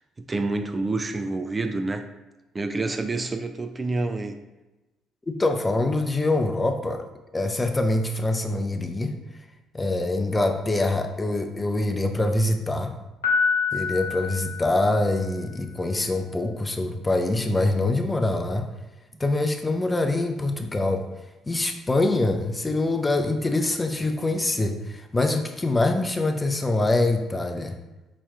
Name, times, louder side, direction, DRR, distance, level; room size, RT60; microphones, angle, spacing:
voice 1, 0.0-2.1 2.5-4.4 19.1-19.2, right 3 dB, 30° right, 7 dB, 0.3 m, -28 dB
voice 2, 5.3-7.1 7.3-9.2 9.7-12.9 13.7-18.7 19.2-21.1 21.5-27.7, left 2 dB, 20° left, 6 dB, 0.6 m, -24 dB
Piano, 13.2-15.3, left 5 dB, 85° left, 0.8 m, -27 dB
4.1 x 3.0 x 3.6 m, 1.1 s
hypercardioid pair, 50°, 0 cm